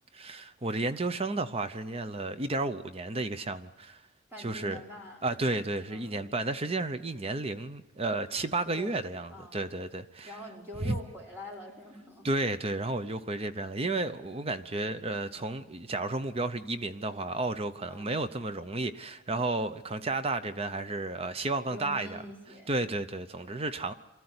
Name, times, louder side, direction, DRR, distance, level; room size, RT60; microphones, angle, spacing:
voice 1, 0.1-4.0 4.4-4.8 5.2-10.3 10.8-11.0 12.2-22.2 22.7-23.9, right 2 dB, 30° right, 0.8 m, -32 dB
voice 2, 4.3-5.3 5.9-6.2 8.8-9.0 9.3-9.7 10.2-12.3 17.9-18.1 21.7-22.7 23.4-23.6, left 1 dB, 10° right, 5.2 m, -45 dB
24.5 x 14.0 x 9.7 m
head